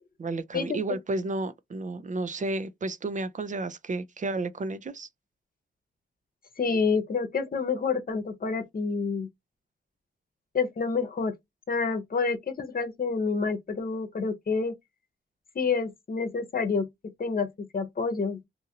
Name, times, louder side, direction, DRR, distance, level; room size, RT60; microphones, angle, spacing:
voice 1, 0.2-5.1, right 2 dB, 40° right, 0.5 m, -32 dB
voice 2, 6.6-9.3 10.5-11.3 11.7-14.7 15.5-16.9 17.2-18.4, left 5 dB, 45° left, 0.8 m, -28 dB
2.7 x 2.5 x 2.8 m
cardioid pair, 75°, 20 cm